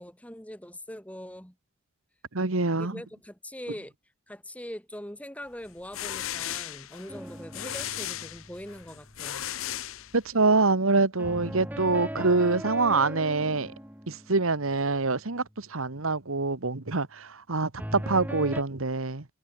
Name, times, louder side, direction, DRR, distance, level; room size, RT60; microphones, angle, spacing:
voice 1, 0.0-1.6 2.7-3.9 4.3-9.5, equal, 5° left, 3.6 m, -42 dB
voice 2, 2.3-3.0 10.1-13.7 14.1-19.3, right 3 dB, 85° right, 1.6 m, -25 dB
sound 1, 5.7-10.5, left 12 dB, 80° left, 0.8 m, -36 dB
sound 2, 7.1-9.4 11.2-15.0 17.8-18.6, equal, 10° right, 3.7 m, -39 dB
head